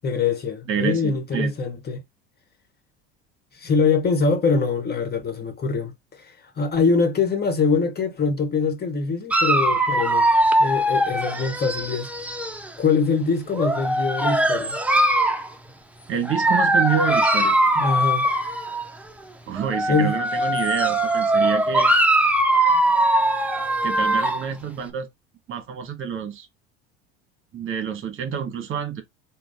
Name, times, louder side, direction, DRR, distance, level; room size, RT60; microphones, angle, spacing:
voice 1, 0.0-2.0 3.6-10.3 10.6-12.1 12.8-14.8 17.8-18.3 19.9-20.2, left 4 dB, 30° left, 1.5 m, -23 dB
voice 2, 0.7-1.5 16.1-17.6 19.5-21.9 23.8-25.1 25.5-26.5 27.5-29.0, right 8 dB, 40° right, 1.4 m, -28 dB
Dog, 9.3-12.7 13.5-15.5 16.3-18.9 19.6-24.5, right 1 dB, 5° right, 0.7 m, -21 dB
3.9 x 2.4 x 3.6 m
hypercardioid pair, 85°, 32 cm